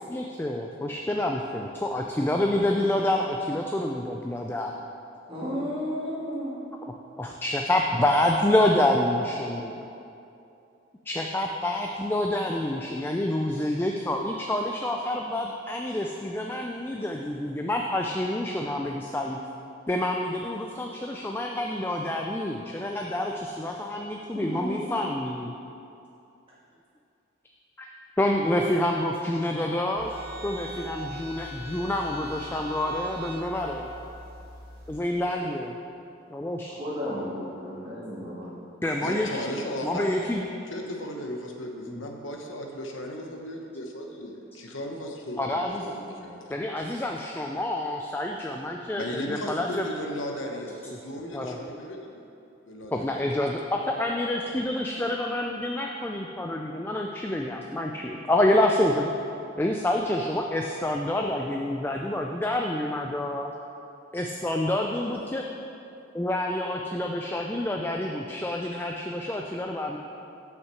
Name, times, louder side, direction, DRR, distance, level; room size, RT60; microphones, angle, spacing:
voice 1, 0.0-4.7 7.2-9.8 11.1-19.4 19.9-25.5 27.8-27.9 28.2-30.1 30.4-33.9 34.9-35.7 36.3-36.7 38.8-39.3 39.8-40.5 41.9-42.0 45.4-45.9 46.5-49.9 51.3-51.6 52.9-59.1 59.6-63.5 64.1-65.4 66.1-70.0, left 1 dB, 10° left, 1 dB, 0.3 m, -27 dB
voice 2, 5.3-6.8 24.3-24.9 36.7-38.5 39.0-39.5, equal, 25° right, -8 dB, 1.9 m, -33 dB
sound 1, 30.0-35.0, right 1 dB, 50° right, 1.2 m, -41 dB
voice 3, 39.0-40.1 40.7-46.4 49.0-52.2 52.7-53.2, left 1 dB, 75° left, 2 dB, 1.0 m, -36 dB
6.5 x 5.8 x 7.0 m, 2.7 s
head